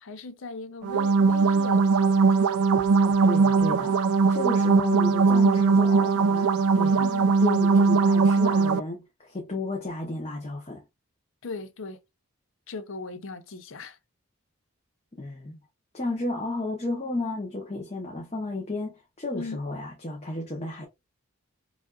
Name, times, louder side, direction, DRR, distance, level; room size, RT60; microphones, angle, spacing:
voice 1, 0.0-2.5 7.0-7.4 11.4-12.0 12.7-14.0 19.3-19.6, left 3 dB, 65° left, 0.6 m, -38 dB
sound 1, 0.8-8.8, right 4 dB, 90° right, 0.4 m, -20 dB
voice 2, 3.2-4.0 4.3-7.0 7.4-10.8 15.2-15.6 15.9-20.9, left 2 dB, 30° left, 0.8 m, -33 dB
5.0 x 2.5 x 2.3 m
head